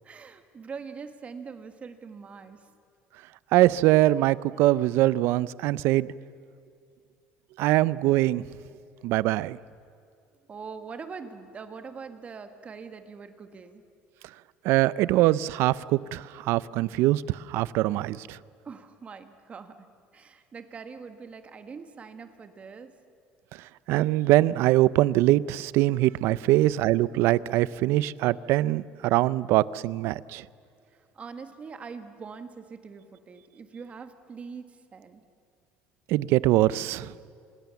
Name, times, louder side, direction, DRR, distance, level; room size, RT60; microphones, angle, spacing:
voice 1, 0.0-2.7 10.5-13.8 18.6-19.9 20.1-22.9 30.9-35.2, right 5 dB, 30° right, 8 dB, 1.6 m, -43 dB
voice 2, 3.5-6.1 7.6-8.4 9.0-9.6 14.6-18.4 23.9-30.4 36.1-37.1, right 16 dB, 75° right, 19 dB, 0.5 m, -23 dB
26.0 x 21.0 x 7.1 m, 2.4 s
cardioid pair, 125°, 4 cm